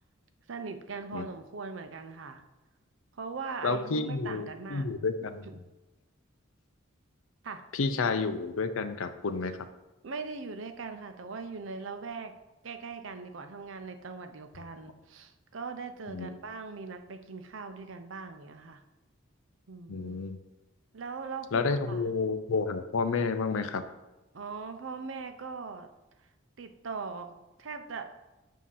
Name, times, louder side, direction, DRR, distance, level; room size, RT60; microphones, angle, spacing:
voice 1, 0.5-2.4 3.1-4.9 5.4-5.6 7.4-7.6 10.0-12.3 12.6-18.8 19.7-20.2 20.9-22.0 24.3-25.9 26.6-28.1, right 4 dB, 70° right, 8 dB, 0.6 m, -40 dB
voice 2, 3.6-5.4 7.7-9.6 16.1-16.4 19.9-20.4 21.5-23.8, left 4 dB, 80° left, 10 dB, 0.5 m, -30 dB
7.4 x 2.8 x 5.5 m, 1.1 s
head